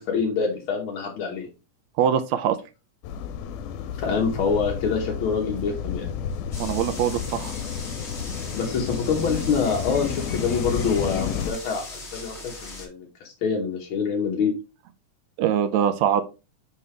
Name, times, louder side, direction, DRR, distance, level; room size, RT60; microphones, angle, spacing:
voice 1, 0.0-1.5 4.0-6.1 8.5-14.5, left 5 dB, 60° left, -1 dB, 1.4 m, -26 dB
voice 2, 2.0-2.6 6.6-7.5 15.4-16.2, right 9 dB, 80° right, 10 dB, 1.7 m, -22 dB
sound 1, 3.0-11.5, left 7 dB, 85° left, 2.1 m, -31 dB
sound 2, 6.5-12.9, left 3 dB, 40° left, 0.9 m, -39 dB
5.6 x 5.4 x 3.2 m, 0.29 s
omnidirectional pair, 3.5 m